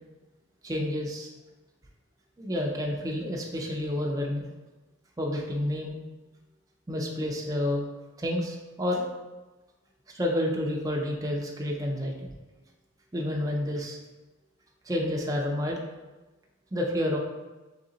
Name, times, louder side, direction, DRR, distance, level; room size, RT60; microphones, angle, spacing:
voice 1, 0.6-1.3 2.4-4.5 5.2-6.0 6.9-7.8 8.2-9.1 10.1-12.3 13.1-14.0 14.9-15.8 16.7-17.2, left 1 dB, 15° right, 0 dB, 0.4 m, -29 dB
3.9 x 3.5 x 3.8 m, 1.2 s
head